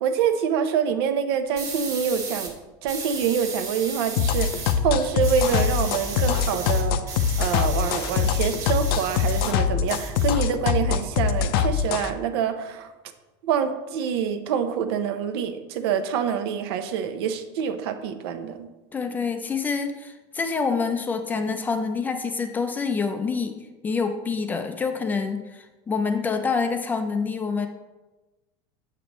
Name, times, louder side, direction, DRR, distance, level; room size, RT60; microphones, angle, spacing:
voice 1, 0.0-2.5 2.8-7.0 7.4-12.9 13.4-18.7, right 7 dB, 75° right, 7 dB, 0.8 m, -26 dB
sound 1, 1.6-2.5 2.9-4.8 5.0-9.5 9.8-10.8, right 4 dB, 25° right, 1.2 m, -35 dB
sound 2, 4.2-12.1, left 8 dB, 70° left, 0.5 m, -23 dB
voice 2, 18.9-27.7, left 5 dB, 15° left, 7 dB, 0.4 m, -27 dB
7.6 x 6.9 x 3.0 m, 1.1 s
supercardioid pair, 165°, 13 cm